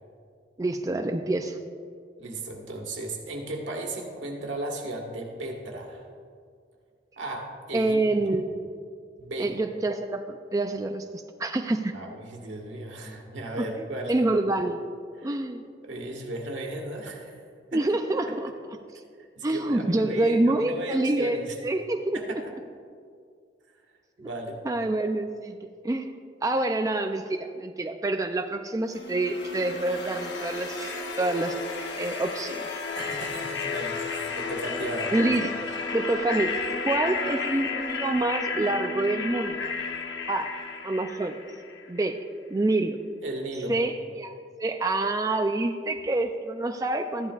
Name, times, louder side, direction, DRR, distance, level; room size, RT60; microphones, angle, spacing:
voice 1, 0.6-1.6 7.7-8.5 9.4-11.9 13.6-14.8 15.2-15.6 17.7-18.5 19.4-22.2 24.2-24.3 24.6-26.1 26.4-31.6 32.0-32.8 35.1-36.6 36.8-39.6 40.3-40.5 40.8-41.4 41.9-42.2 42.5-43.0 43.7-47.3, right 2 dB, 20° right, 5 dB, 0.3 m, -27 dB
voice 2, 2.2-6.0 7.2-8.0 8.3-8.4 9.2-9.5 11.9-14.1 15.2-15.5 15.8-17.4 17.7-17.8 19.3-21.6 22.1-22.4 24.2-24.6 32.9-35.1 43.2-43.7, right 2 dB, 90° right, 1 dB, 1.6 m, -35 dB
sound 1, 28.9-41.9, left 4 dB, 70° left, 1.0 m, -32 dB
14.0 x 10.5 x 2.4 m, 2.2 s
head